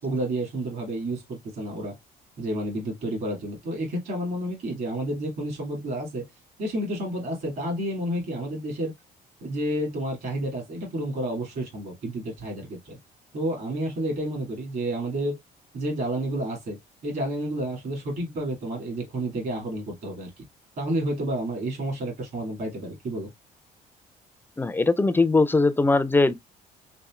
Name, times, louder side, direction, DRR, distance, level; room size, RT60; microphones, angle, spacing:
voice 1, 0.0-2.0 2.4-6.2 6.6-8.9 9.4-13.0 13.3-15.4 15.7-16.8 17.0-20.4 20.8-23.3, right 1 dB, 60° right, 2.0 m, -30 dB
voice 2, 24.6-26.3, left 3 dB, 10° left, 0.4 m, -20 dB
4.2 x 3.5 x 2.3 m
cardioid pair, 110°, 17 cm